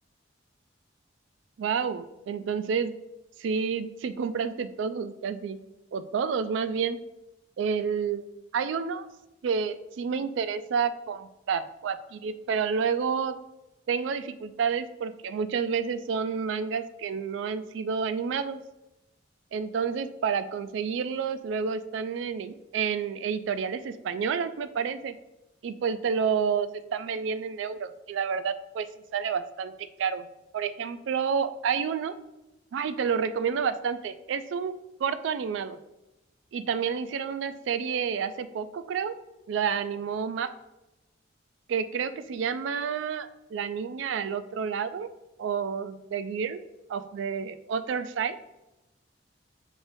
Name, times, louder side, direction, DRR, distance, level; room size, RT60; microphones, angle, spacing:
voice 1, 1.6-2.9 3.4-5.6 5.9-7.0 7.6-8.2 8.5-9.1 9.4-13.4 13.9-18.6 19.5-25.2 25.6-28.9 29.1-30.3 30.5-32.1 32.7-34.7 35.0-35.8 36.5-39.2 39.5-40.5 41.7-45.1 45.4-46.6 46.9-48.4, right 6 dB, 75° right, 12 dB, 0.3 m, -29 dB
5.2 x 3.5 x 2.6 m, 0.97 s
head